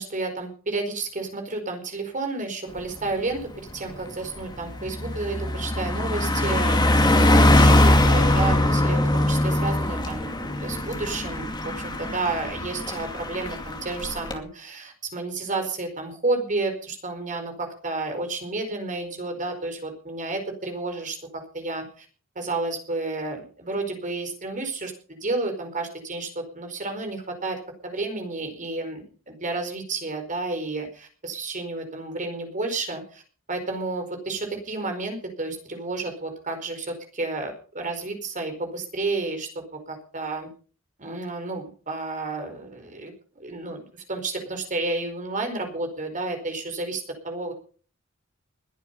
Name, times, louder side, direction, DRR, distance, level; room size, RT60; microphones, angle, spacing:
voice 1, 0.0-22.0 22.3-33.2 33.5-40.5 41.0-47.5, right 3 dB, 40° right, 5 dB, 4.8 m, -31 dB
Car passing by, 2.8-3.0 3.4-14.4, left 1 dB, 20° left, 2.4 m, -22 dB
21.5 x 9.2 x 5.6 m, 0.41 s
head